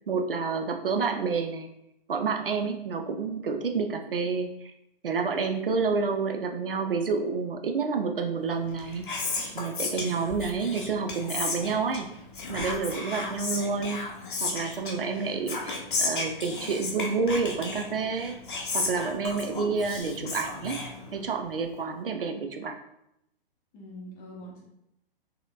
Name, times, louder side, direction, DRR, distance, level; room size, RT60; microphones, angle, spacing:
voice 1, 0.1-1.7 2.1-4.7 5.0-9.1 9.5-12.1 12.5-14.1 14.4-18.4 18.7-20.8 21.1-22.7, right 4 dB, 70° right, 5 dB, 0.5 m, -29 dB
Whispering, 8.6-21.5, left 3 dB, 60° left, 0.8 m, -34 dB
voice 2, 13.0-13.5 23.7-24.6, equal, 20° left, -3 dB, 0.7 m, -45 dB
4.0 x 2.7 x 2.4 m, 0.82 s
figure-of-eight pair, 120°, 29 cm